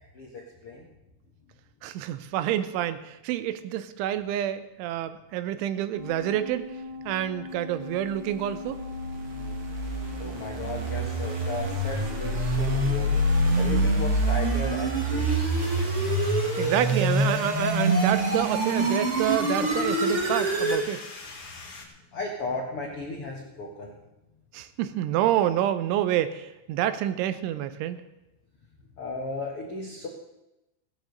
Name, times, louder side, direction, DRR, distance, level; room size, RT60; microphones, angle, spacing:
voice 1, 1.8-6.7 7.1-8.8 16.6-21.0 24.5-28.0, right 11 dB, 90° right, 12 dB, 3.3 m, -28 dB
sound 1, 5.9-13.8, left 3 dB, 5° left, 3.8 m, -40 dB
sound 2, 8.7-20.9, right 1 dB, 70° right, 1.3 m, -26 dB
voice 2, 10.2-13.1 13.5-15.3 22.1-23.9 29.0-30.1, left 2 dB, 80° left, -1 dB, 1.2 m, -35 dB
sound 3, 10.4-11.0 11.4-12.4 13.1-13.2 15.2-21.8, left 3 dB, 45° left, 2.0 m, -44 dB
16.5 x 8.9 x 6.5 m, 0.94 s
omnidirectional pair, 5.3 m